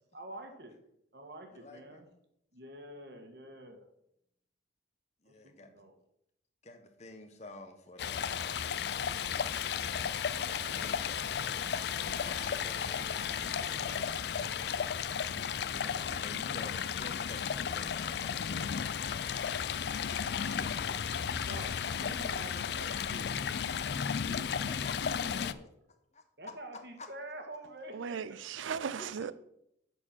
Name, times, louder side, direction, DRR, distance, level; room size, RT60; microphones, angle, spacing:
voice 1, 0.1-0.8 1.1-2.1 2.5-3.9 5.2-6.0 13.5-14.3 19.7-20.2 20.6-21.0 21.4-23.5 23.8-25.9 26.4-28.4, right 1 dB, 60° right, 1.4 m, -48 dB
voice 2, 1.5-2.0 5.2-5.7 6.6-8.8 9.8-11.7 12.0-13.5 14.3-14.8 15.7-19.6 20.5-20.8 24.8-25.2 26.1-26.2 29.0-29.3, left 2 dB, 35° left, 1.0 m, -51 dB
Stream, 8.0-25.5, left 7 dB, 60° left, 0.4 m, -34 dB
Musical instrument, 8.8-24.3, right 3 dB, 20° right, 0.3 m, -54 dB
voice 3, 27.9-29.3, right 7 dB, 90° right, 0.4 m, -37 dB
8.8 x 4.5 x 7.2 m
head